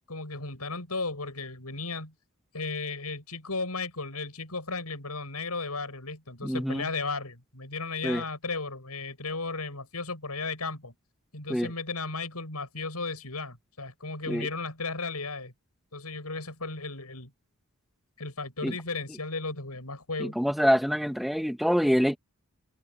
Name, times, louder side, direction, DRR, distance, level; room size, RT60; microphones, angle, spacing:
voice 1, 0.0-2.1 2.5-10.9 11.3-15.5 15.9-17.3 18.2-20.4, left 3 dB, 85° left, 7.9 m, -35 dB
voice 2, 6.4-6.9 8.0-8.2 11.5-11.7 14.3-14.5 18.6-18.7 20.2-22.2, equal, ahead, 1.9 m, -25 dB
head